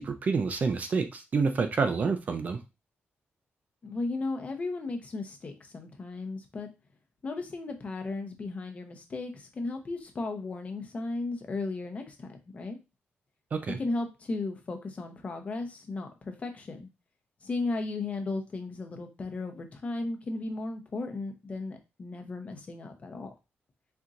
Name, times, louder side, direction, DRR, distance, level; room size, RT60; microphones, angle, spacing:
voice 1, 0.0-2.6 13.5-13.8, right 4 dB, 35° right, 7 dB, 0.4 m, -28 dB
voice 2, 3.8-6.7 7.2-12.8 13.8-16.9 17.4-23.3, left 3 dB, 30° left, 5 dB, 0.8 m, -35 dB
4.3 x 4.0 x 2.5 m, 0.26 s
wide cardioid pair, 180°, 4 cm